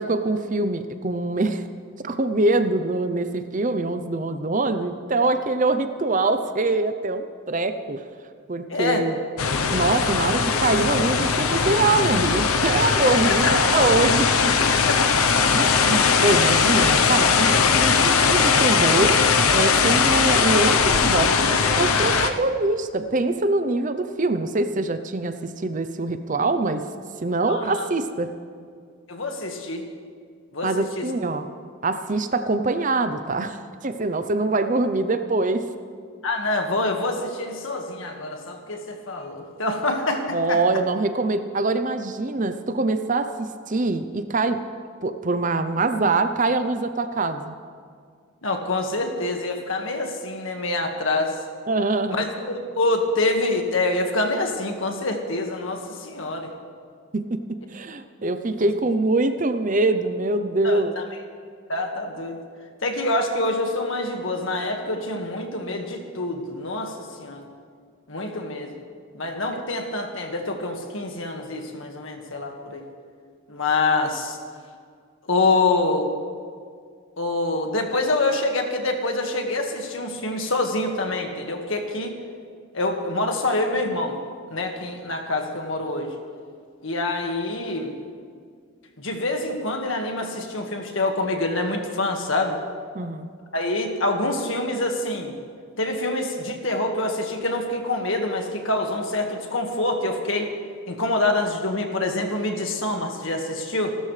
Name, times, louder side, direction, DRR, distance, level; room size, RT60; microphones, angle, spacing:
voice 1, 0.0-1.7 2.0-8.0 8.5-9.2 9.7-14.5 15.5-19.2 19.5-26.9 27.2-28.3 30.6-31.5 31.8-35.7 40.3-44.6 45.0-47.5 51.7-52.2 57.1-61.0 69.5-69.6 92.9-93.3, right 2 dB, 35° right, 9 dB, 0.6 m, -24 dB
voice 2, 8.7-9.0 13.3-13.5 27.5-27.9 29.1-29.9 30.5-31.0 36.2-40.6 48.4-51.4 52.1-56.5 60.6-61.0 61.7-62.4 62.8-67.5 68.1-68.8 69.1-72.9 73.5-74.4 75.3-76.1 77.2-82.2 82.7-84.2 84.5-86.1 86.8-87.9 89.0-92.6 93.5-95.4 95.8-100.5 100.9-103.9, left 2 dB, 65° left, 3 dB, 1.8 m, -26 dB
sound 1, 9.4-22.3, left 5 dB, 85° left, 0.9 m, -20 dB
27.5 x 13.0 x 3.3 m, 2.1 s
head